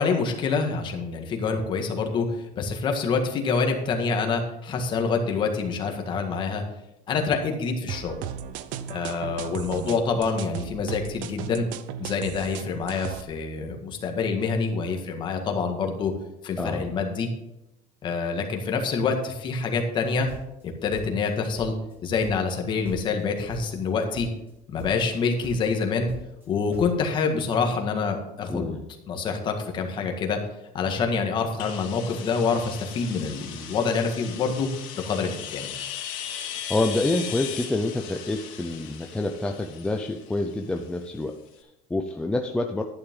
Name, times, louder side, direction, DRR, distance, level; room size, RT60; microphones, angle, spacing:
voice 1, 0.0-2.3 2.6-6.6 7.1-8.2 8.9-11.7 12.0-16.1 16.4-17.3 18.0-20.3 20.6-21.7 22.0-24.3 24.7-26.1 26.5-30.4 30.7-34.7 35.0-35.7, left 5 dB, 30° left, 4 dB, 1.8 m, -26 dB
sound 1, 7.9-13.2, right 9 dB, 60° right, 0.7 m, -36 dB
voice 2, 16.6-16.9 28.5-28.8 36.3-42.8, left 2 dB, 5° left, 2 dB, 0.6 m, -28 dB
sound 2, 20.0-21.3 21.6-22.6 22.8-23.2 23.5-23.9 24.1-24.5 24.8-25.2 25.4-27.0, right 1 dB, 15° right, 2.5 m, -42 dB
sound 3, 31.6-41.2, left 9 dB, 60° left, 2.8 m, -38 dB
12.0 x 10.5 x 3.7 m, 0.92 s
cardioid pair, 170°, 16 cm